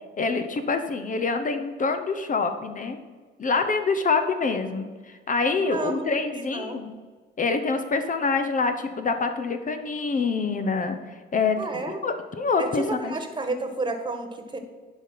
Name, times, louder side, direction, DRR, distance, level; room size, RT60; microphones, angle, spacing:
voice 1, 0.2-3.0 3.4-6.9 7.4-11.6 12.0-13.1, left 4 dB, 40° left, 7 dB, 0.9 m, -26 dB
voice 2, 5.6-6.8 11.6-12.0 12.6-14.6, right 3 dB, 25° right, 6 dB, 1.5 m, -31 dB
10.5 x 5.3 x 5.7 m, 1.4 s
cardioid pair, 90°, 20 cm